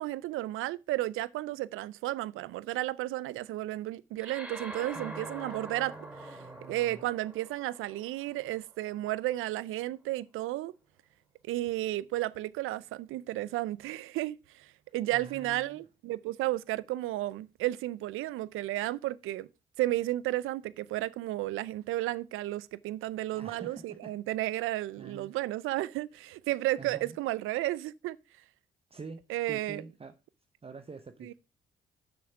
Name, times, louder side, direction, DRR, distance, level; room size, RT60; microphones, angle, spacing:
voice 1, 0.0-10.7 11.5-19.5 19.8-28.2 29.3-29.8 31.2-31.3, right 16 dB, 75° right, 0.5 m, -33 dB
sound 1, 4.2-8.9, right 1 dB, 5° right, 3.5 m, -45 dB
voice 2, 4.9-7.1 15.1-15.8 23.3-24.1 25.0-25.3 26.8-27.2 28.9-30.1 30.6-31.3, right 4 dB, 30° right, 0.9 m, -46 dB
6.9 x 6.4 x 5.8 m
supercardioid pair, 50°, 21 cm